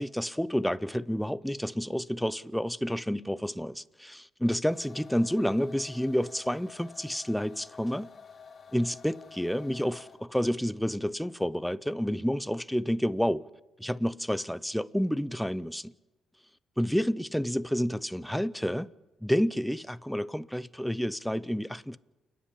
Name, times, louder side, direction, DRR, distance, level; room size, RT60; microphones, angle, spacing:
voice 1, 0.0-8.1 8.7-13.5 13.8-15.9 16.8-18.9 19.2-22.0, equal, ahead, 0.6 m, -29 dB
sound 1, 4.7-10.4, left 6 dB, 45° left, 1.8 m, -51 dB
29.0 x 10.5 x 9.9 m
cardioid pair, 90°, 0 cm